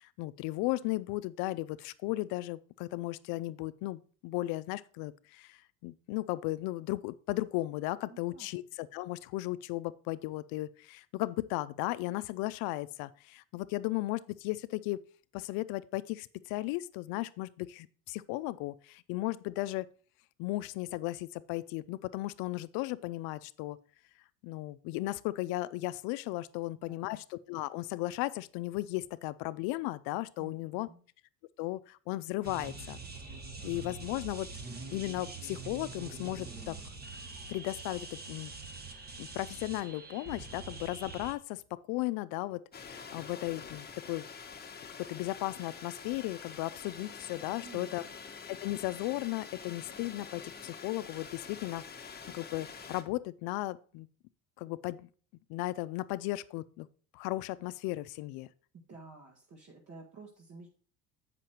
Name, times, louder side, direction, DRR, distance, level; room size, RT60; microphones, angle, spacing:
voice 1, 0.0-15.0 15.3-19.9 20.4-23.8 24.4-30.9 31.6-33.0 33.6-34.5 34.9-36.8 37.5-38.5 39.2-44.3 45.1-48.0 48.5-54.1 54.6-55.1 55.5-56.9 57.1-58.5, left 18 dB, 80° left, 0.6 m, -36 dB
voice 2, 8.1-8.5 26.9-27.2 30.4-31.0 47.6-48.2 58.7-60.7, right 3 dB, 45° right, 1.9 m, -52 dB
sound 1, 32.4-41.3, right 3 dB, 25° right, 1.4 m, -44 dB
sound 2, 42.7-53.0, left 5 dB, 25° left, 1.3 m, -47 dB
7.6 x 5.8 x 4.3 m
cardioid pair, 105°, 36 cm